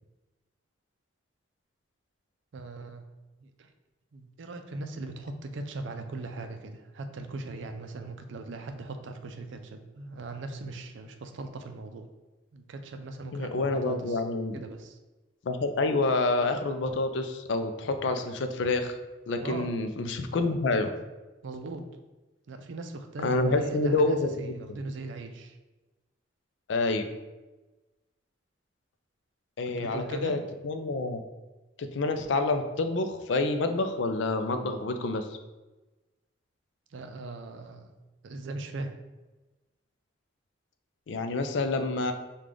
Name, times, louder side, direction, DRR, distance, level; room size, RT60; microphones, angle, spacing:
voice 1, 2.5-3.0 3.6-3.7 4.1-12.1 12.5-14.2 14.5-15.0 19.4-19.7 21.4-21.9 22.5-25.5 29.8-30.4 36.9-37.9 38.2-38.9, right 2 dB, 75° right, 6 dB, 0.4 m, -39 dB
voice 2, 13.3-14.6 15.4-19.0 19.3-20.9 23.2-24.6 26.7-27.1 29.6-31.2 31.8-35.3 41.1-42.1, left 2 dB, 70° left, 7 dB, 0.4 m, -28 dB
4.9 x 2.3 x 3.7 m, 1.1 s
head